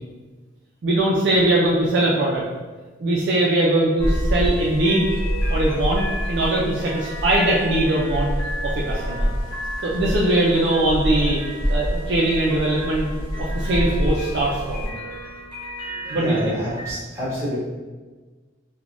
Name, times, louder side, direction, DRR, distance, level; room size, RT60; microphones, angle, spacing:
voice 1, 0.8-2.4 3.0-5.1 5.5-6.0 6.3-8.3 8.6-9.3 9.8-11.4 11.7-13.1 13.4-14.9 16.1-16.6, right 1 dB, 55° right, -4 dB, 0.4 m, -21 dB
sound 1, 4.0-16.9, right 1 dB, 45° left, 1.1 m, -35 dB
sound 2, 4.0-14.9, equal, 30° left, 0.8 m, -26 dB
voice 2, 16.1-17.6, left 1 dB, 15° right, -9 dB, 1.2 m, -28 dB
3.2 x 2.1 x 2.4 m, 1.3 s
head